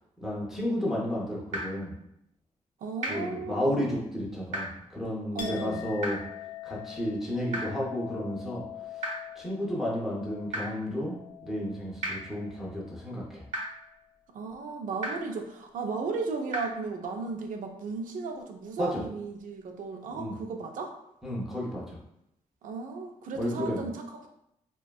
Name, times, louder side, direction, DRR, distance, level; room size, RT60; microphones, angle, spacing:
voice 1, 0.2-2.0 3.1-6.2 6.6-8.6 8.9-9.0 9.4-13.4 18.8-19.0 20.1-20.4 21.2-22.0 23.3-23.8, equal, ahead, -6 dB, 0.4 m, -32 dB
sound 1, 1.5-1.6 3.0-3.1 4.5-4.6 6.0-6.1 7.5-7.6 9.0-9.1 10.5-10.6 12.0-12.1 13.5-13.6 15.0-15.1 16.5-16.6, right 1 dB, 65° right, 0.9 m, -32 dB
voice 2, 2.8-3.9 5.3-5.9 14.3-20.9 22.6-24.3, right 4 dB, 80° right, 4 dB, 0.4 m, -35 dB
Chink clink, 5.4-13.1 13.4-14.1, left 10 dB, 85° left, 0.4 m, -44 dB
2.5 x 2.2 x 2.2 m, 0.80 s
wide cardioid pair, 165°, 13 cm